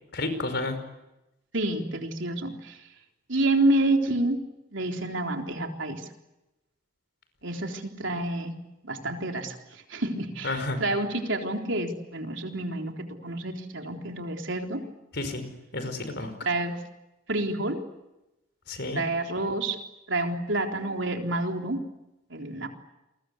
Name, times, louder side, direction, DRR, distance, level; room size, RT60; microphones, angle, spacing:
voice 1, 0.1-0.8 10.4-10.8 15.1-15.4 15.7-16.3 18.7-19.0, left 2 dB, 55° left, 9 dB, 5.3 m, -30 dB
voice 2, 1.5-2.9 3.3-4.4 4.7-6.1 7.4-8.5 8.8-14.8 16.4-16.8 17.3-17.8 18.9-19.8 20.1-21.8 22.3-22.7, right 2 dB, 65° right, 3 dB, 3.9 m, -28 dB
29.5 x 23.0 x 8.2 m, 0.94 s
head